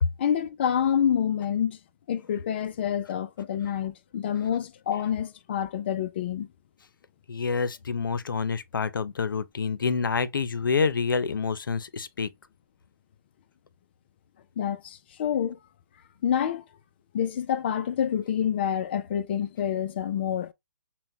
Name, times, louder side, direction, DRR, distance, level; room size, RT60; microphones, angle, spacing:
voice 1, 0.2-1.8 2.1-6.5 14.6-15.6 16.2-16.6 17.1-20.5, left 9 dB, 30° left, 0.4 m, -27 dB
voice 2, 7.3-12.3, left 5 dB, 90° left, 0.6 m, -27 dB
5.7 x 2.2 x 2.6 m
hypercardioid pair, 160°, 11 cm